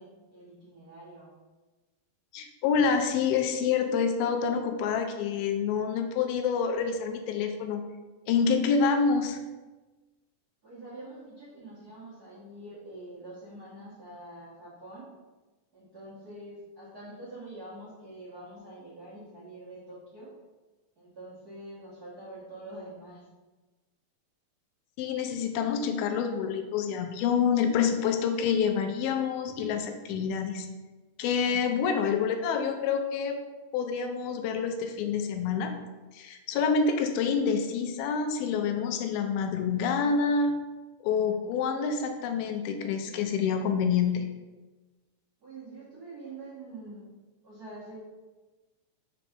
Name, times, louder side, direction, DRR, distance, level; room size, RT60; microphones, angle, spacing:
voice 1, 0.0-1.4 10.6-15.1 15.7-20.3 21.0-23.2 45.4-47.1 47.4-48.0, right 2 dB, 60° right, -10 dB, 0.9 m, -45 dB
voice 2, 2.3-7.8 8.3-9.4 25.0-30.7 31.2-33.4 33.7-35.7 36.1-40.5 41.0-44.3, left 6 dB, 85° left, 6 dB, 2.5 m, -27 dB
5.1 x 4.7 x 5.2 m, 1.2 s
omnidirectional pair, 4.3 m